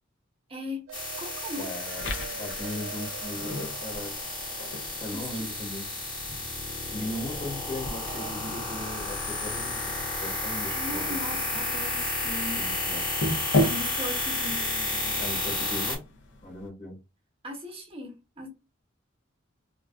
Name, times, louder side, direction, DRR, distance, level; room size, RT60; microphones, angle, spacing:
voice 1, 0.5-0.9 1.2-1.7 5.1-5.5 6.9-7.1 10.7-12.6 13.6-15.2 17.4-18.5, left 1 dB, 30° right, 0.6 m, -38 dB
sound 1, 0.9-16.0, left 2 dB, 25° left, 0.8 m, -32 dB
sound 2, 0.9-6.9 8.1-8.3, right 8 dB, 70° right, 0.3 m, -45 dB
voice 2, 1.6-4.2 5.0-5.9 6.9-11.4 12.5-13.1 15.2-16.0 16.4-17.0, left 1 dB, 40° left, 1.1 m, -38 dB
sound 3, 2.0-16.7, left 1 dB, 60° left, 0.5 m, -36 dB
2.4 x 2.3 x 2.2 m
head